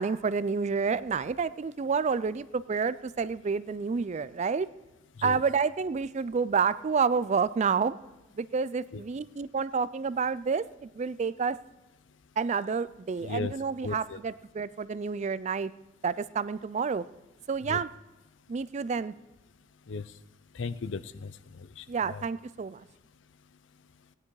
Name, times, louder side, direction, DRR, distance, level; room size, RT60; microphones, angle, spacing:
voice 1, 0.0-4.7 5.2-7.9 8.4-11.6 12.4-15.7 16.0-17.0 17.5-17.9 18.5-19.1 21.9-22.8, right 5 dB, 35° right, 17 dB, 0.3 m, -29 dB
voice 2, 13.2-13.5 13.8-14.2 17.6-17.8 19.9-20.0 20.5-22.3, left 4 dB, 65° left, 16 dB, 0.5 m, -36 dB
17.5 x 9.7 x 4.7 m, 1.0 s
head